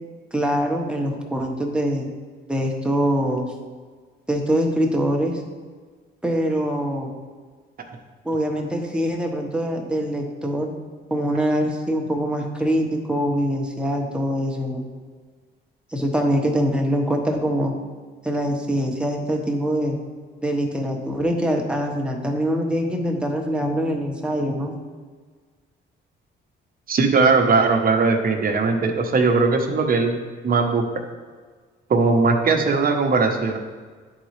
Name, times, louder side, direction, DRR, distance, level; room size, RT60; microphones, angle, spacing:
voice 1, 0.3-2.1 2.5-3.5 4.3-5.4 6.2-7.1 8.2-10.7 11.1-14.9 15.9-17.7 18.2-20.0 20.4-24.7, equal, 5° right, 0 dB, 1.2 m, -23 dB
voice 2, 26.9-30.2 30.4-30.8 31.9-33.6, right 4 dB, 45° right, 4 dB, 1.0 m, -19 dB
10.5 x 4.0 x 3.2 m, 1.5 s
cardioid pair, 90°, 20 cm